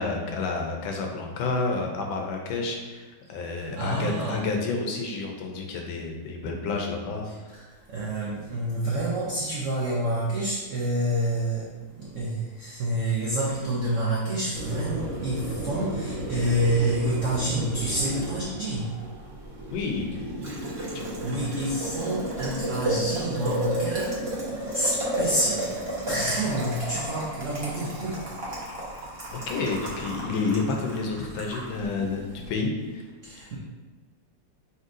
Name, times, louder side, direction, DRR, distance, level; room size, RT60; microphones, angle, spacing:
voice 1, 0.0-7.3 19.7-20.1 20.9-21.1 29.3-33.1, left 3 dB, 75° left, 2 dB, 1.4 m, -30 dB
voice 2, 3.6-4.4 7.2-7.4 7.7-18.9 20.9-24.2 24.7-28.4 33.2-33.6, right 1 dB, 85° right, -5 dB, 0.6 m, -28 dB
Boiling, 14.5-32.5, right 1 dB, 45° right, 0.9 m, -33 dB
5.4 x 3.1 x 2.5 m, 1.3 s
omnidirectional pair, 2.2 m